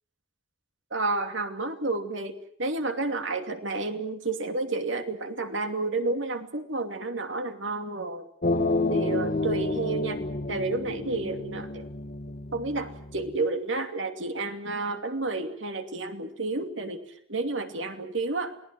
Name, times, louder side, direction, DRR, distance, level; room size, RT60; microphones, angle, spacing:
voice 1, 0.9-8.3 8.9-10.2 10.5-11.9 12.5-18.5, right 3 dB, 85° right, 7 dB, 2.7 m, -31 dB
sound 1, 8.4-13.3, left 2 dB, 50° left, 1.6 m, -30 dB
29.0 x 19.0 x 7.7 m, 0.64 s
head